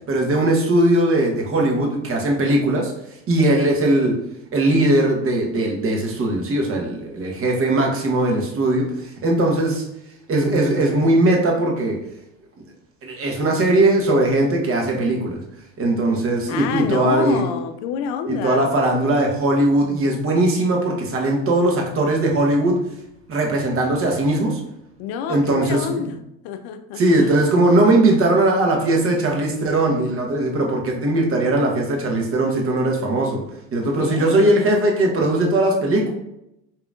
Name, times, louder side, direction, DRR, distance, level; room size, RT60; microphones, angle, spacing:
voice 1, 0.1-2.9 3.3-4.2 4.5-9.8 10.3-12.0 13.0-15.4 15.8-17.4 18.3-22.8 23.3-24.6 25.3-26.1 27.0-33.4 33.7-36.1, right 1 dB, 40° right, 1.1 m, -19 dB
voice 2, 16.5-18.7 25.0-26.2 26.4-27.3 34.0-34.6, left 7 dB, 70° left, 0.5 m, -28 dB
4.8 x 2.9 x 2.4 m
hypercardioid pair, 75°, 34 cm